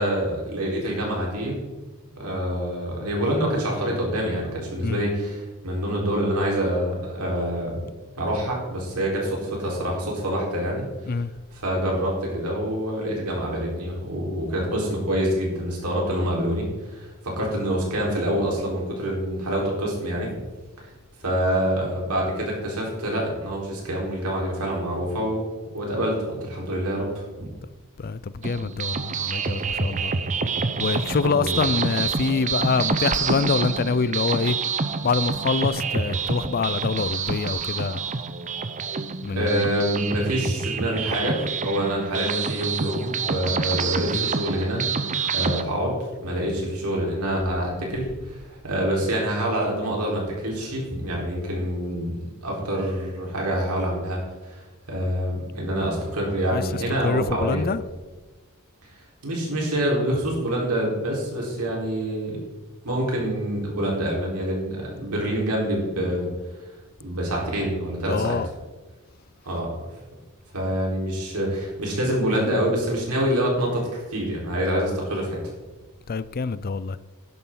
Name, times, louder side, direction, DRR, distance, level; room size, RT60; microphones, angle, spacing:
voice 1, 0.0-1.6 2.1-7.9 8.2-10.8 11.5-20.3 21.2-27.5 31.2-31.6 39.3-52.2 52.4-57.7 59.2-62.4 62.8-66.3 67.0-68.4 69.4-69.8 70.5-75.4, equal, 90° right, 4.3 m, -26 dB
voice 2, 28.0-30.1 30.8-34.6 35.0-38.0 39.2-39.7 44.1-44.3 56.5-57.8 68.1-68.5 76.1-77.0, left 4 dB, 45° left, 0.5 m, -25 dB
sound 1, 28.4-45.6, right 5 dB, 35° right, 0.7 m, -27 dB
12.5 x 11.0 x 3.9 m
head